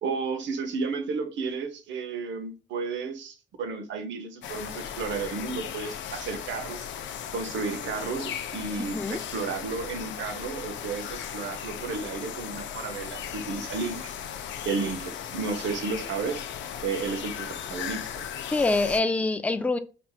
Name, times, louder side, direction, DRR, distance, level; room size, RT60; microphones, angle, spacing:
voice 1, 0.0-6.9 7.3-14.1 14.6-16.4 16.8-18.3, right 4 dB, 70° right, 0.7 m, -33 dB
sound 1, 4.4-19.0, left 9 dB, 70° left, 0.4 m, -37 dB
voice 2, 8.8-9.2 18.5-19.8, left 3 dB, 5° left, 0.3 m, -25 dB
4.3 x 2.8 x 2.2 m
cardioid pair, 90°, 20 cm